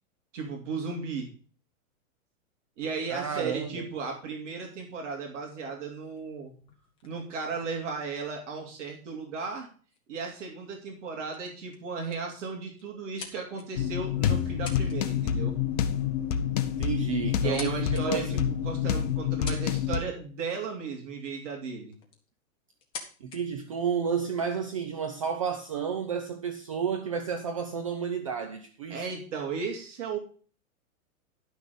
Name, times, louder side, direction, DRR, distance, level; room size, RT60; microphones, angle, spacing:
voice 1, 0.3-1.3 2.8-6.5 7.0-9.7 10.1-15.6 17.4-18.4 18.6-21.9 28.9-30.2, right 5 dB, 55° right, 3.0 m, -35 dB
voice 2, 3.1-3.9 16.7-18.4 23.2-29.1, right 7 dB, 25° right, 0.5 m, -31 dB
sound 1, 6.0-8.6 9.5-9.6 9.9-10.2 10.7-11.1 11.3-11.4 11.7-12.3 12.8-13.9 14.4-15.0 15.2-15.5 16.6-16.7 17.2-18.0 18.6-18.7 19.2-20.0 21.4-21.5 21.9-22.3 22.7-23.4, left 5 dB, 10° left, 1.0 m, -45 dB
sound 2, 13.8-20.0, left 9 dB, 30° left, 0.7 m, -28 dB
11.5 x 6.2 x 5.1 m
supercardioid pair, 170°, 43 cm